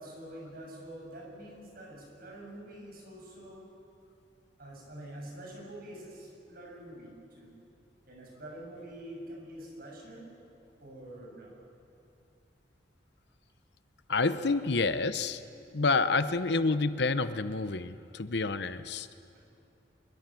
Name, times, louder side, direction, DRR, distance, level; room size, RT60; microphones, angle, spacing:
voice 1, 0.0-3.7 4.6-7.6 8.1-10.3 10.7-11.6 16.2-16.5 19.3-19.5, right 1 dB, 55° right, -1 dB, 7.9 m, -46 dB
voice 2, 14.1-15.4 15.7-19.1, left 3 dB, 65° left, 12 dB, 0.9 m, -28 dB
26.5 x 22.0 x 7.8 m, 2.6 s
head